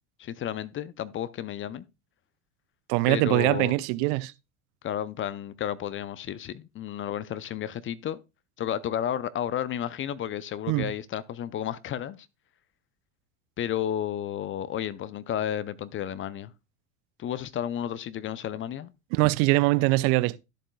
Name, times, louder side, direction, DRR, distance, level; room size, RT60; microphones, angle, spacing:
voice 1, 0.2-1.8 3.1-3.7 4.8-8.2 8.6-12.2 13.6-16.5 17.2-18.9, left 10 dB, 30° left, 0.5 m, -32 dB
voice 2, 2.9-4.3 10.7-10.9 19.1-20.4, right 21 dB, 55° right, 0.6 m, -23 dB
13.0 x 7.4 x 2.2 m
hypercardioid pair, 90°, 41 cm